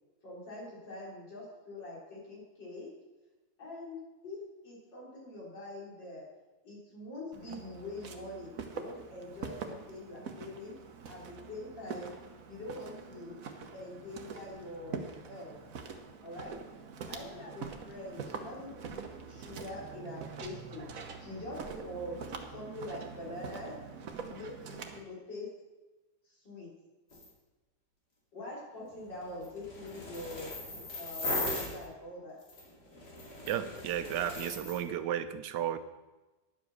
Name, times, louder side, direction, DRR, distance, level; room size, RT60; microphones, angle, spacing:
voice 1, 0.2-2.9 3.6-6.2 6.6-10.7 11.1-12.1 12.5-13.4 13.7-15.0 15.3-15.5 16.2-16.6 17.1-20.9 21.2-22.2 22.5-23.8 24.3-25.5 26.3-26.7 28.3-30.5 31.0-32.4, left 1 dB, 85° left, -5 dB, 4.4 m, -44 dB
Walk footsteps, 7.3-25.0, right 5 dB, 55° right, 1.3 m, -44 dB
sound 1, 27.1-27.3 29.0-31.8 32.4-34.9, left 2 dB, 65° left, 3.2 m, -38 dB
voice 2, 33.4-35.8, right 10 dB, 75° right, 11 dB, 1.3 m, -33 dB
10.5 x 7.9 x 6.3 m, 1.1 s
omnidirectional pair, 1.9 m